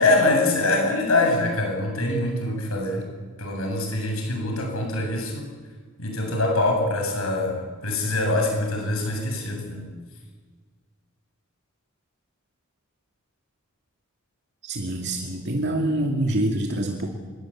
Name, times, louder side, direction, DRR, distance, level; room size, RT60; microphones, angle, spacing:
voice 1, 0.0-3.1 3.4-5.5 6.0-9.8, left 2 dB, 85° left, 2 dB, 7.8 m, -24 dB
voice 2, 14.6-17.1, right 1 dB, 55° right, 2 dB, 2.5 m, -25 dB
26.5 x 21.5 x 8.8 m, 1.4 s
head